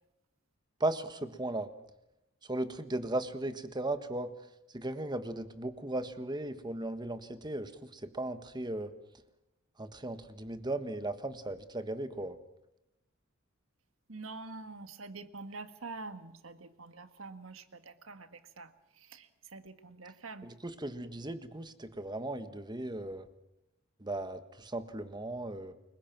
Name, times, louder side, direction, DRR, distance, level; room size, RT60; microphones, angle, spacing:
voice 1, 0.8-1.7 2.5-4.3 4.7-8.9 9.8-12.4 20.4-23.3 24.0-25.7, right 2 dB, 20° right, 10 dB, 1.4 m, -36 dB
voice 2, 14.1-20.5, right 3 dB, 80° right, 10 dB, 1.6 m, -46 dB
29.5 x 22.0 x 6.0 m, 0.85 s
head